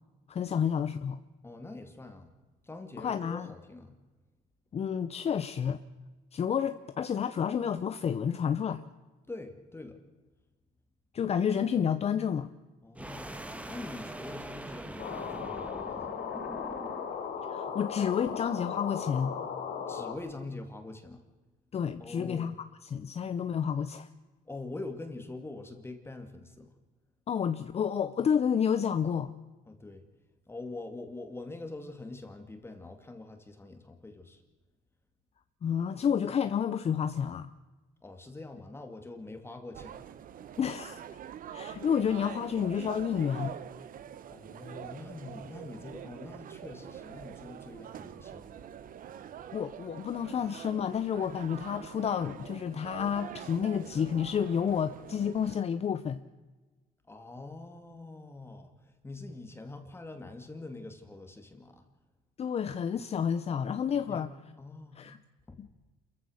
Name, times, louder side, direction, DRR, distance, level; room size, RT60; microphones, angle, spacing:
voice 1, 0.3-1.2 3.0-3.5 4.7-5.8 6.3-8.8 11.1-12.5 17.5-19.3 21.7-22.6 22.8-24.1 27.3-29.3 35.6-37.5 40.6-41.0 41.5-43.5 49.5-56.2 62.4-64.3 64.9-65.2 65.6-65.7, left 7 dB, 40° left, 11 dB, 0.8 m, -30 dB
voice 2, 1.4-2.3 2.6-3.9 9.3-10.0 12.8-13.3 13.7-16.2 19.9-21.2 22.0-22.5 24.5-26.7 29.7-30.0 30.5-34.4 38.0-39.9 44.3-48.6 57.1-58.7 59.0-61.8 64.1-64.2 64.6-65.0 65.5-65.6, left 2 dB, 15° left, 5 dB, 2.3 m, -44 dB
sound 1, 13.0-17.3, right 1 dB, 10° right, 1.4 m, -43 dB
sound 2, 15.0-20.1, left 7 dB, 70° left, 3.4 m, -37 dB
sound 3, 39.7-55.6, right 9 dB, 55° right, 1.1 m, -45 dB
27.5 x 14.5 x 6.5 m, 1.2 s
cardioid pair, 110°, 17 cm